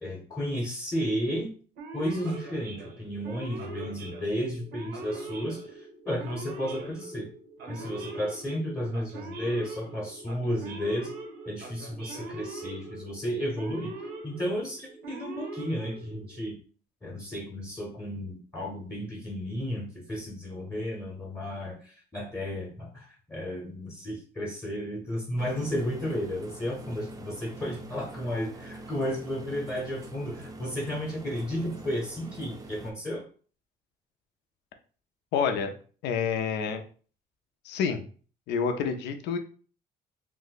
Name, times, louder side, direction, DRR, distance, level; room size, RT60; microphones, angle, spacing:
voice 1, 0.0-1.5 1.9-7.3 7.7-11.1 11.5-13.9 14.2-16.6 17.0-33.2, equal, 15° left, -2 dB, 0.8 m, -33 dB
Male speech man speaking / Siren, 1.8-16.5, right 2 dB, 75° right, 0.8 m, -42 dB
sound 1, 25.4-32.9, right 2 dB, 20° right, 0.5 m, -44 dB
voice 2, 35.3-35.7 36.0-36.8 37.6-38.0 38.5-39.4, left 6 dB, 80° left, 7 dB, 0.5 m, -28 dB
2.6 x 2.1 x 3.8 m, 0.41 s
cardioid pair, 110°, 17 cm